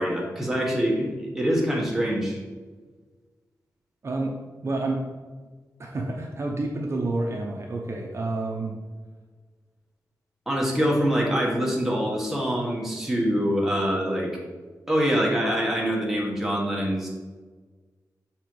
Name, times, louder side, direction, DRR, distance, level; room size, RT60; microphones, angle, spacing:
voice 1, 0.0-2.4 10.5-14.3 14.9-17.1, equal, 5° right, -3 dB, 1.4 m, -24 dB
voice 2, 4.0-4.3 4.6-5.0 5.8-8.8, right 2 dB, 45° right, 0 dB, 0.7 m, -29 dB
5.9 x 4.4 x 4.6 m, 1.4 s
wide cardioid pair, 140°, 7 cm